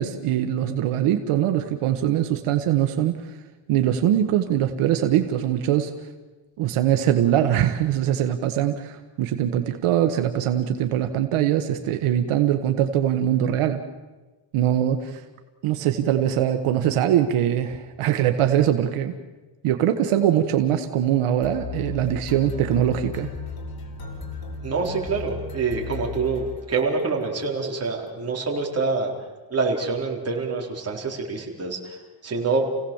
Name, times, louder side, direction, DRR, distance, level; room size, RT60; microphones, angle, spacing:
voice 1, 0.0-3.4 3.7-5.9 6.6-13.8 14.5-15.2 15.6-19.1 19.6-23.3, right 11 dB, 85° right, 7 dB, 1.5 m, -22 dB
sound 1, 21.4-27.1, left 5 dB, 45° left, 4.2 m, -35 dB
voice 2, 24.6-29.1 29.5-31.9 32.2-32.6, right 4 dB, 30° right, 0 dB, 4.4 m, -26 dB
29.0 x 17.0 x 7.3 m, 1.2 s
cardioid pair, 120°, 50 cm